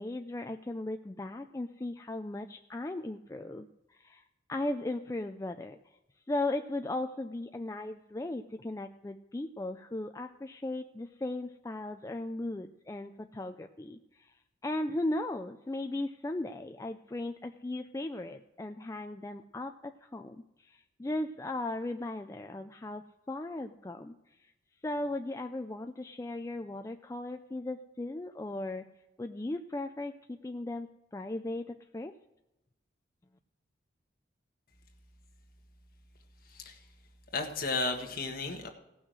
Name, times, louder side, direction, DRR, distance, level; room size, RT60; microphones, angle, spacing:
voice 1, 0.0-4.2 4.5-5.8 6.3-24.2 24.4-24.5 24.8-28.9 29.2-32.2, left 2 dB, 15° left, 6 dB, 0.3 m, -37 dB
voice 2, 37.3-38.7, left 3 dB, 50° left, 3 dB, 1.6 m, -33 dB
17.0 x 6.2 x 6.3 m, 0.95 s
head